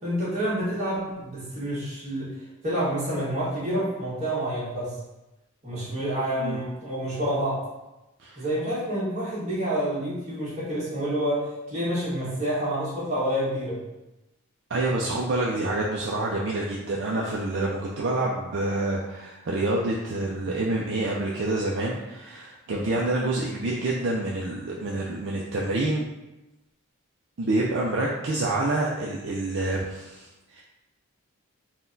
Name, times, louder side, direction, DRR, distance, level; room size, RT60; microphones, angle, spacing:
voice 1, 0.0-2.3 2.6-4.9 5.6-7.6 8.3-13.8, right 1 dB, 30° right, -8 dB, 1.5 m, -28 dB
voice 2, 14.7-26.1 27.4-30.6, right 2 dB, 55° right, -3 dB, 0.4 m, -27 dB
4.0 x 2.2 x 3.9 m, 1.0 s
head